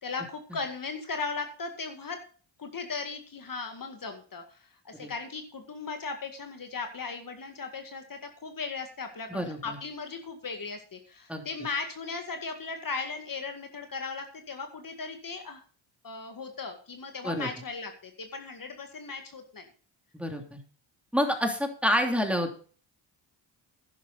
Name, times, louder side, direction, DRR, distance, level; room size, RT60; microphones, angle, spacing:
voice 1, 0.0-2.2 2.6-15.6 16.0-19.7, left 4 dB, 45° left, 5 dB, 2.1 m, -37 dB
voice 2, 9.3-9.8 11.3-11.5 17.2-17.5 20.1-20.6 21.1-22.6, equal, 5° right, 3 dB, 3.0 m, -28 dB
11.5 x 10.0 x 4.1 m, 0.41 s
cardioid pair, 80°, 46 cm